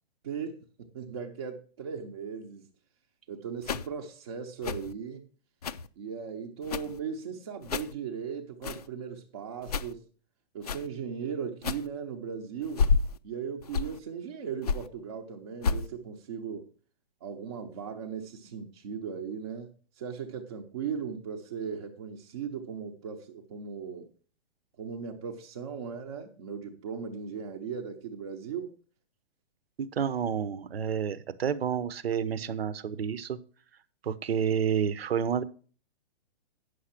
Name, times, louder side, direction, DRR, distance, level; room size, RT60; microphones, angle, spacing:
voice 1, 0.2-2.7 3.3-5.3 6.0-10.0 10.5-12.8 13.2-16.7 17.2-19.7 20.0-24.1 24.8-28.8, right 6 dB, 30° right, 0.8 m, -38 dB
sound 1, 3.6-3.9 4.6-4.9 5.6-5.9 6.6-7.0 7.6-7.9 8.6-8.9 9.6-9.9 10.6-10.9 11.6-11.9 12.6-13.2 13.6-14.0 14.6-14.9 15.6-15.9, left 5 dB, 40° left, 0.4 m, -30 dB
voice 2, 29.8-33.4 34.0-35.4, right 8 dB, 80° right, 1.0 m, -29 dB
9.3 x 6.5 x 5.9 m
hypercardioid pair, 175°, 30 cm